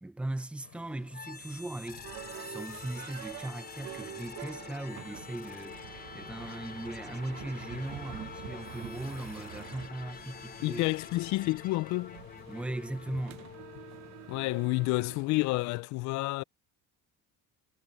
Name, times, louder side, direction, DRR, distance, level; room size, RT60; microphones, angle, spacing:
voice 1, 0.0-2.1 2.4-5.9 6.1-10.9 12.5-13.5, right 1 dB, 5° right, 0.6 m, -38 dB
sound 1, 0.6-15.7, left 20 dB, 75° left, 6.9 m, -56 dB
sound 2, 1.1-15.0, left 6 dB, 30° left, 4.5 m, -47 dB
sound 3, 2.0-15.8, right 16 dB, 55° right, 1.1 m, -48 dB
voice 2, 10.6-12.2 14.3-16.4, left 21 dB, 60° left, 0.4 m, -29 dB
cardioid pair, 170°, 33 cm